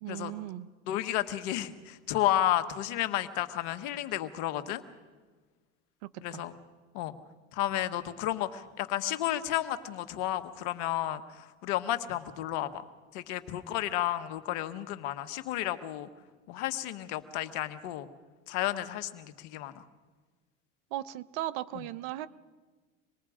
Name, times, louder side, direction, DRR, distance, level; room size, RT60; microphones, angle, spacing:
voice 1, 0.0-0.7 6.0-6.4 20.9-22.3, right 14 dB, 75° right, 17 dB, 0.9 m, -37 dB
voice 2, 0.9-4.8 6.2-6.6 6.9-7.2 7.5-12.9 13.1-16.1 16.5-18.1 18.5-19.8 21.7-21.8, left 13 dB, 75° left, 10 dB, 1.4 m, -32 dB
26.0 x 20.0 x 5.0 m, 1.4 s
supercardioid pair, 90°, 34 cm